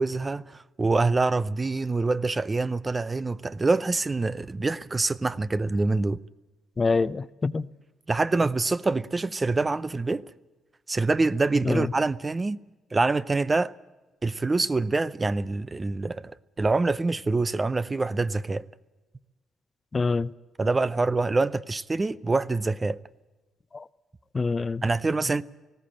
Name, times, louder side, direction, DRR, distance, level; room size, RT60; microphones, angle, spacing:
voice 1, 0.0-6.2 8.1-10.2 10.9-12.6 12.9-13.7 14.2-18.6 20.6-23.0 24.8-25.4, right 3 dB, 25° right, 0.6 m, -25 dB
voice 2, 6.8-7.7 11.6-11.9 19.9-20.3 23.7-23.9 24.3-24.8, left 4 dB, 30° left, 0.6 m, -25 dB
19.5 x 16.0 x 8.9 m
cardioid pair, 90°, 0 cm